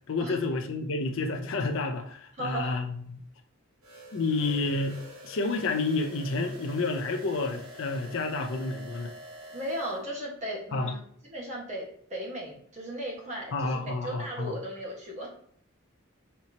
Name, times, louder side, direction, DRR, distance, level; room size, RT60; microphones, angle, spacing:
voice 1, 0.1-3.2 4.1-9.1 10.7-10.9 13.5-14.5, left 3 dB, 65° left, 4 dB, 0.5 m, -30 dB
voice 2, 2.4-2.7 9.5-11.0 11.3-15.3, right 1 dB, 35° right, -2 dB, 1.5 m, -36 dB
sound 1, 3.8-10.0, equal, 85° right, 1.8 m, -46 dB
4.3 x 4.2 x 2.8 m, 0.62 s
head